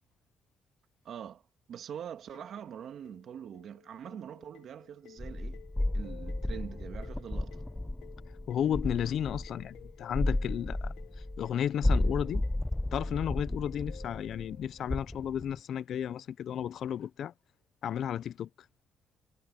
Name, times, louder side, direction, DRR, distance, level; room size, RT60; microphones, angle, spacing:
voice 1, 1.0-1.4 1.7-5.6 5.9-7.6, right 9 dB, 65° right, 2.0 m, -44 dB
sound 1, 2.3-14.6, left 12 dB, 85° left, 1.1 m, -56 dB
sound 2, 5.2-15.6, left 1 dB, 10° left, 0.6 m, -33 dB
voice 2, 8.5-10.9 11.4-12.4 12.9-17.3 17.8-18.5, left 9 dB, 65° left, 0.6 m, -33 dB
cardioid pair, 90°, 0 cm